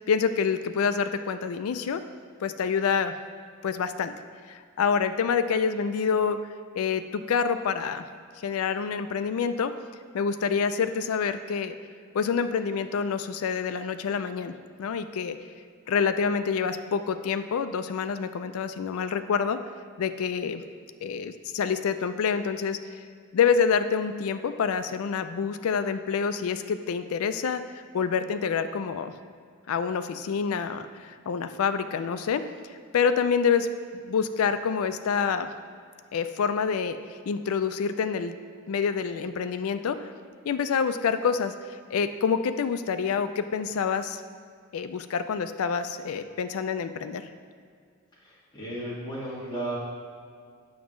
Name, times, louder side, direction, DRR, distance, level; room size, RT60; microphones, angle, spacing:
voice 1, 0.1-2.0 2.4-3.1 3.6-4.1 4.5-6.4 6.8-8.1 8.4-9.7 10.1-11.7 12.1-14.5 14.8-15.4 15.9-19.6 20.0-20.6 21.0-22.8 23.3-29.1 29.7-32.4 32.9-33.7 34.0-35.5 36.1-37.0 37.3-38.3 38.7-40.1 40.5-41.5 41.9-44.2 44.7-47.3, left 6 dB, 80° left, 10 dB, 0.4 m, -27 dB
voice 2, 48.2-49.7, right 1 dB, 20° left, -8 dB, 1.8 m, -34 dB
7.2 x 6.0 x 3.1 m, 2.1 s
head